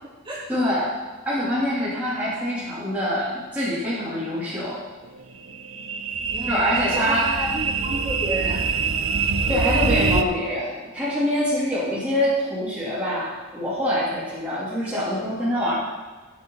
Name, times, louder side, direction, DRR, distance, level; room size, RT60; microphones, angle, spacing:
voice 1, 0.5-0.9 1.2-4.8 6.5-7.2 9.5-15.7, equal, 5° right, -11 dB, 3.4 m, -25 dB
sound 1, 5.2-10.2, right 5 dB, 80° right, 0.8 m, -24 dB
voice 2, 6.3-6.6 6.9-8.6, equal, 25° right, -7 dB, 4.1 m, -30 dB
15.5 x 9.8 x 4.1 m, 1.3 s
head